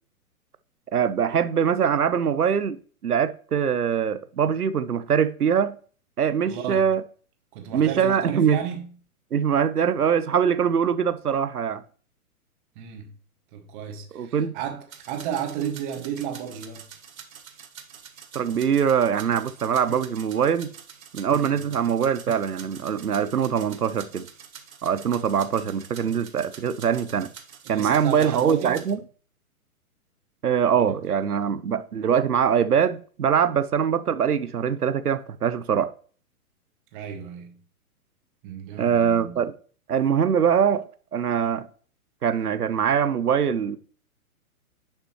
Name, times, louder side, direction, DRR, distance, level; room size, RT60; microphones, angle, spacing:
voice 1, 0.9-5.8 6.2-7.0 7.7-8.6 9.3-11.8 14.1-14.5 18.3-20.7 21.1-24.3 24.8-27.3 27.7-29.0 30.4-35.9 38.8-39.5 39.9-40.8 41.1-41.7 42.2-43.8, right 7 dB, 85° right, 0.8 m, -23 dB
voice 2, 6.4-6.9 7.5-8.9 12.8-13.1 13.5-16.9 21.4-21.6 27.7-28.8 30.7-31.2 36.9-37.6 38.4-39.4, right 8 dB, 35° right, 1.7 m, -33 dB
sound 1, 14.9-28.9, right 7 dB, 70° right, 1.4 m, -46 dB
10.0 x 5.7 x 3.1 m
figure-of-eight pair, 125°, 44 cm